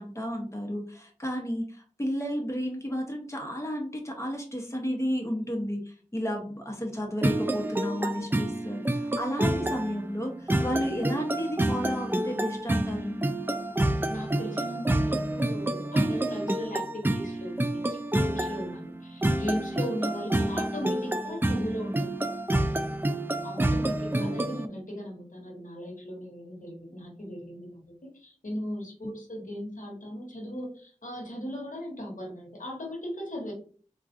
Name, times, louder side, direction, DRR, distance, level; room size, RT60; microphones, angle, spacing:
voice 1, 0.0-13.2 23.8-24.4 29.0-29.1, equal, 20° left, 1 dB, 0.9 m, -32 dB
sound 1, 7.2-24.7, right 1 dB, 15° right, 0.3 m, -28 dB
voice 2, 14.1-22.1 23.4-27.9 28.1-33.5, equal, 80° left, -2 dB, 1.0 m, -37 dB
3.6 x 2.3 x 2.5 m, 0.43 s
wide cardioid pair, 45°, 13 cm